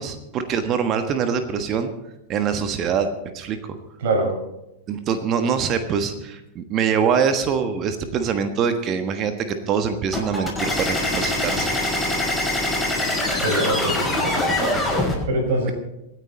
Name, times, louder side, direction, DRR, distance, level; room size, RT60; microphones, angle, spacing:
voice 1, 0.0-1.9 2.3-3.1 3.3-3.7 4.9-11.9, right 7 dB, 35° right, 8 dB, 1.4 m, -24 dB
voice 2, 4.0-4.3 13.4-15.7, right 2 dB, 55° right, 2 dB, 5.7 m, -25 dB
sound 1, 10.1-15.2, left 1 dB, 5° left, 5.9 m, -23 dB
25.5 x 9.5 x 4.2 m, 0.90 s
figure-of-eight pair, 90°, 0 cm